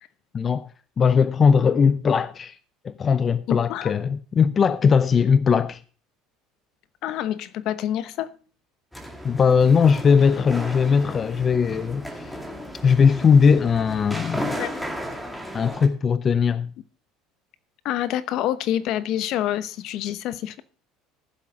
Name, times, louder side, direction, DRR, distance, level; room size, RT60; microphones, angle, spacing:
voice 1, 0.3-0.7 1.0-2.6 2.8-5.8 9.2-12.4 12.8-14.6 15.5-16.7, left 6 dB, 30° left, 0.6 m, -19 dB
voice 2, 3.5-3.9 7.0-8.3 14.6-14.7 17.8-20.6, left 12 dB, 60° left, 0.9 m, -27 dB
sound 1, 8.9-15.9, equal, 5° left, 2.3 m, -35 dB
14.5 x 7.4 x 5.0 m
supercardioid pair, 115°, 0 cm